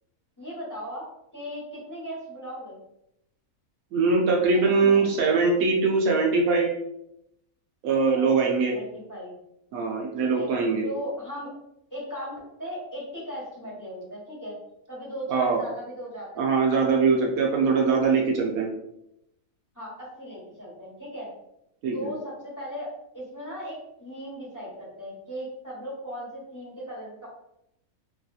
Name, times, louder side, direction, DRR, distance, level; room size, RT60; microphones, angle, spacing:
voice 1, 0.4-1.1 1.3-2.8 4.5-5.0 8.1-9.3 10.2-10.5 10.8-11.5 11.9-14.6 14.9-16.8 17.1-17.3 19.7-21.3 21.9-22.9 23.1-27.3, equal, 15° left, -8 dB, 1.1 m, -37 dB
voice 2, 3.9-6.7 7.8-8.7 9.7-10.9 15.3-15.6 16.4-18.7 21.8-22.1, right 4 dB, 80° right, 0 dB, 1.0 m, -22 dB
3.0 x 2.7 x 2.3 m, 0.81 s
omnidirectional pair, 1.5 m